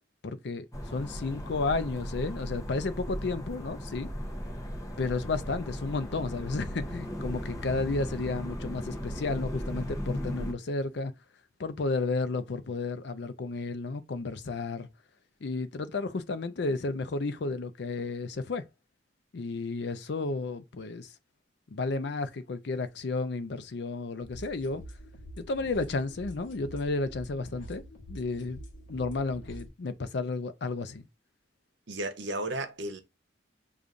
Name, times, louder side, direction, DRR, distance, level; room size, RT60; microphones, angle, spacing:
voice 1, 0.2-4.1 5.0-11.1 11.6-14.9 15.4-18.6 19.3-21.1 21.7-24.8 25.4-27.8 28.1-28.6 28.9-31.0, left 3 dB, 60° left, 0.5 m, -32 dB
sound 1, 0.7-10.5, equal, 15° left, 0.7 m, -37 dB
sound 2, 24.2-29.7, equal, 80° left, 0.9 m, -46 dB
voice 2, 31.9-33.0, right 2 dB, 70° right, 0.8 m, -34 dB
6.7 x 2.4 x 2.4 m
head